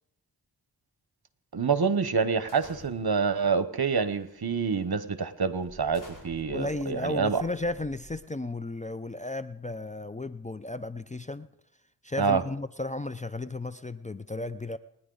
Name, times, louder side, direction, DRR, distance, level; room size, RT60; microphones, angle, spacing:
voice 1, 1.5-7.4 12.2-12.4, right 5 dB, 60° right, 13 dB, 1.0 m, -27 dB
sound 1, 2.5-3.3 4.1-4.4 4.8-5.0 5.6-8.5, equal, 45° left, 4.8 m, -51 dB
voice 2, 6.5-11.5 12.0-14.8, left 2 dB, 20° left, 10 dB, 0.4 m, -34 dB
29.5 x 10.0 x 3.9 m, 0.79 s
cardioid pair, 40°, 43 cm